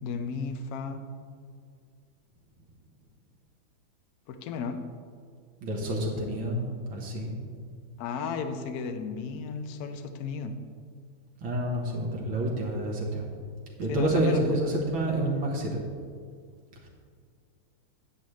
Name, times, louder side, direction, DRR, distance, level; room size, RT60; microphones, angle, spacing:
voice 1, 0.0-1.0 4.3-4.8 8.0-10.5 13.9-14.4, left 5 dB, 70° left, 7 dB, 0.9 m, -34 dB
voice 2, 5.6-7.4 11.4-13.3 13.8-15.8, right 1 dB, 70° right, -2 dB, 2.0 m, -28 dB
10.0 x 8.6 x 3.2 m, 2.1 s
omnidirectional pair, 2.3 m